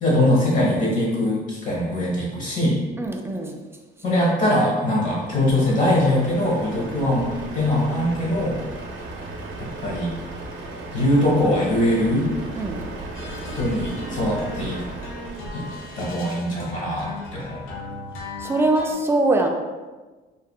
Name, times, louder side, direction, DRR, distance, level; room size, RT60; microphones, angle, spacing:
voice 1, 0.0-2.8 4.0-8.6 9.6-10.1 10.9-12.3 13.5-14.8 15.5-15.7 16.0-17.6, left 1 dB, 40° left, -4 dB, 1.1 m, -22 dB
voice 2, 3.0-3.6 6.8-6.9 12.6-12.8 18.4-19.5, right 2 dB, 10° right, 2 dB, 0.3 m, -22 dB
Truck, 5.1-16.3, right 2 dB, 75° right, 0.5 m, -36 dB
sound 1, 13.1-18.9, left 2 dB, 85° left, 0.6 m, -37 dB
2.8 x 2.4 x 2.3 m, 1.2 s
cardioid pair, 90°, 20 cm